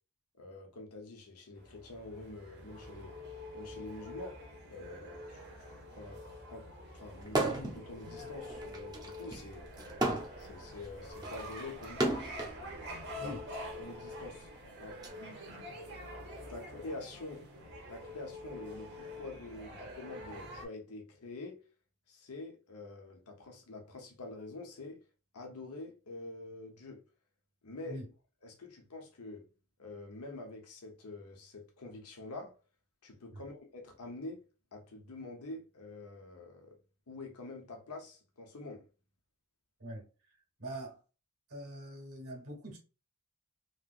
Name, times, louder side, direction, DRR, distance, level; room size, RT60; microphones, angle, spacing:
voice 1, 0.4-3.2 3.5-4.4 4.7-6.7 6.9-9.7 10.4-12.2 13.1-13.4 13.8-14.5 14.8-15.4 16.5-17.5 17.9-21.6 22.1-25.0 25.3-27.0 27.6-28.0 28.4-29.5 29.8-32.5 33.0-34.4 34.7-36.8 37.1-38.8, left 2 dB, 85° left, 0.9 m, -46 dB
sound 1, 1.6-20.6, left 1 dB, 50° right, 1.0 m, -46 dB
sound 2, 7.3-7.8 8.2-12.6 13.4-15.1, right 2 dB, 20° right, 0.6 m, -34 dB
voice 2, 39.8-41.0 41.5-42.8, right 1 dB, 70° right, 1.5 m, -44 dB
3.2 x 2.9 x 2.4 m
head